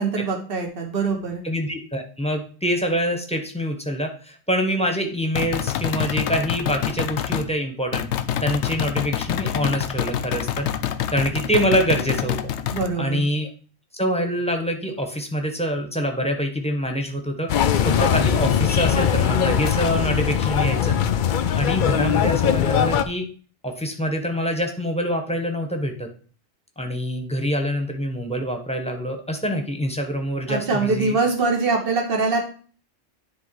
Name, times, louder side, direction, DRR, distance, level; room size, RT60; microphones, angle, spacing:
voice 1, 0.0-1.4 12.7-13.3 30.5-32.4, right 4 dB, 55° right, 2 dB, 1.6 m, -23 dB
voice 2, 1.4-8.1 8.4-10.7 11.1-12.5 13.0-13.5 14.0-17.5 17.8-20.9 21.6-23.3 23.6-26.1 26.8-31.1, equal, 5° left, 4 dB, 1.1 m, -25 dB
sound 1, 5.4-7.5 7.9-12.9, left 10 dB, 80° left, 0.9 m, -26 dB
sound 2, 17.5-23.0, left 8 dB, 55° left, 0.6 m, -21 dB
10.5 x 3.5 x 4.7 m, 0.40 s
omnidirectional pair, 1.2 m